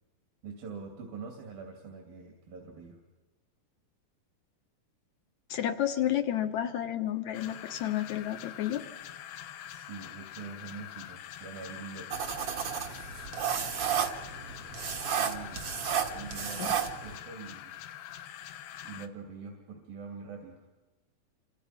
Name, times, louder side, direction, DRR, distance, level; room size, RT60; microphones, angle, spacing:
voice 1, 0.4-3.0 9.7-12.1 15.1-15.6 16.1-17.7 18.8-20.7, right 5 dB, 70° right, 2 dB, 4.4 m, -44 dB
voice 2, 5.5-8.8 16.6-16.7, left 11 dB, 60° left, 8 dB, 2.3 m, -31 dB
sound 1, 7.3-19.1, left 11 dB, 80° left, 2.8 m, -45 dB
sound 2, 12.1-17.2, right 8 dB, 50° right, 2.0 m, -32 dB
28.5 x 25.5 x 5.9 m, 1.2 s
omnidirectional pair, 4.2 m